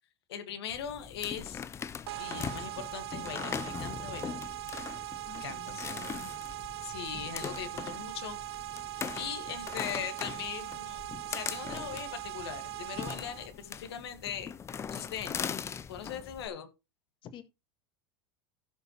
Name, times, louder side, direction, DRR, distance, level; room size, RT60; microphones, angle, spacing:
voice 1, 0.3-1.6 2.2-4.4 5.4-5.9 6.8-8.4 9.1-11.0 11.3-14.5 14.9-15.5 15.9-16.7, left 8 dB, 85° left, 1.7 m, -40 dB
sound 1, 0.7-16.5, left 7 dB, 20° left, 0.5 m, -41 dB
sound 2, 2.1-13.5, right 17 dB, 85° right, 0.4 m, -41 dB
voice 2, 5.2-6.3 17.2-17.4, left 9 dB, 40° left, 1.6 m, -49 dB
16.0 x 5.4 x 3.0 m
supercardioid pair, 125°, 13 cm